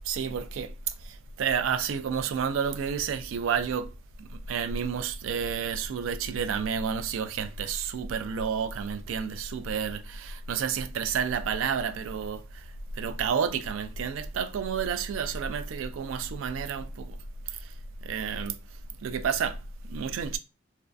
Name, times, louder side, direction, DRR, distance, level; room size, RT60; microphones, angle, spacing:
voice 1, 0.1-0.7 1.4-3.9 4.3-12.4 13.0-17.2 18.0-18.5 19.0-19.6 19.8-20.4, right 6 dB, 85° right, 0.3 m, -30 dB
2.3 x 2.2 x 2.5 m
head